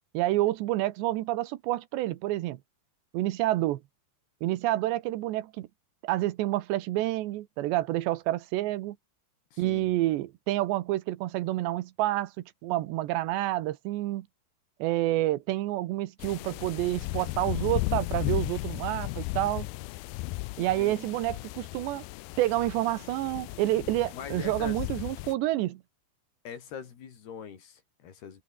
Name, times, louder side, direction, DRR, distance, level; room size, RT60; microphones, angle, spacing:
voice 1, 0.1-2.6 3.1-3.8 4.4-5.7 6.0-9.0 9.6-12.3 12.6-14.3 14.8-19.7 20.6-22.0 22.4-25.8, right 16 dB, 85° right, 3.3 m, -28 dB
voice 2, 9.5-9.9 20.6-21.1 24.1-24.8 26.5-28.4, left 7 dB, 70° left, 5.3 m, -42 dB
sound 1, 16.2-25.3, left 21 dB, 90° left, 2.1 m, -35 dB
omnidirectional pair, 4.9 m